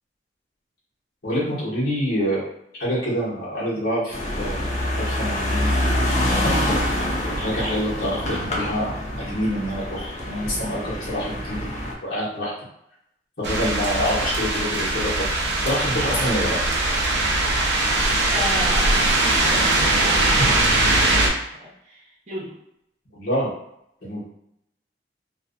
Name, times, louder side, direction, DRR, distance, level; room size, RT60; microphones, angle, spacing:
voice 1, 1.2-2.5 2.8-5.8 6.9-11.7 12.0-12.5 13.4-16.6 23.1-23.5 24.0-24.2, equal, 60° left, -9 dB, 1.0 m, -26 dB
sound 1, 4.1-11.9, left 1 dB, 40° left, 0.5 m, -25 dB
sound 2, 13.4-21.3, right 2 dB, 75° right, 0.5 m, -21 dB
voice 2, 18.3-22.5, left 1 dB, 40° right, -7 dB, 1.0 m, -35 dB
2.5 x 2.3 x 2.4 m, 0.77 s
head